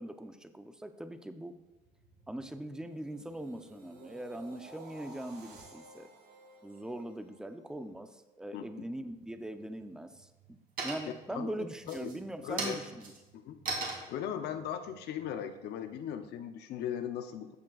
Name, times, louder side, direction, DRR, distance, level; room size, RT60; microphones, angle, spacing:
voice 1, 0.0-1.5 2.3-6.1 6.6-13.1, right 1 dB, 5° right, 9 dB, 0.6 m, -41 dB
sound 1, 1.7-7.8 8.3-8.6, right 2 dB, 75° right, 2.5 m, -55 dB
sound 2, 9.1-9.7 10.1-10.5 10.8-11.3 11.8-16.2, right 3 dB, 60° right, 2.7 m, -39 dB
voice 2, 11.3-12.1 12.4-12.8 13.3-13.6 14.1-17.6, left 9 dB, 75° left, 8 dB, 0.7 m, -38 dB
13.5 x 7.3 x 2.4 m, 1.1 s
cardioid pair, 110°, 17 cm